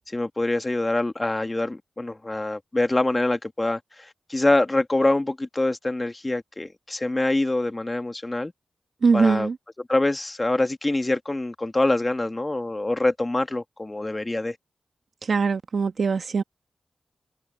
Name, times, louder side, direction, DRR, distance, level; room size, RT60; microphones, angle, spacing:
voice 1, 0.1-8.5 9.1-9.5 9.8-14.6, left 2 dB, 30° left, 2.2 m, -25 dB
voice 2, 9.0-9.5 15.3-16.4, right 5 dB, 70° right, 1.4 m, -21 dB
cardioid pair, 50°, 0 cm